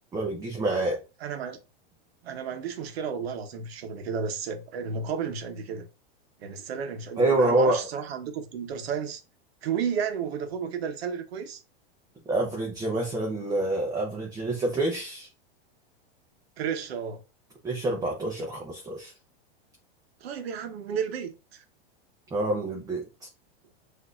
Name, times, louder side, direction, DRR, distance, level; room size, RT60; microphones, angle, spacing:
voice 1, 0.1-1.0 7.2-7.8 12.3-15.3 17.6-19.1 22.3-23.0, right 2 dB, 10° right, 0.7 m, -26 dB
voice 2, 1.2-1.6 2.2-5.9 6.4-9.2 9.6-11.6 16.6-17.2 20.2-21.6, right 7 dB, 85° right, 0.9 m, -32 dB
6.1 x 2.7 x 2.4 m
supercardioid pair, 140°, 30 cm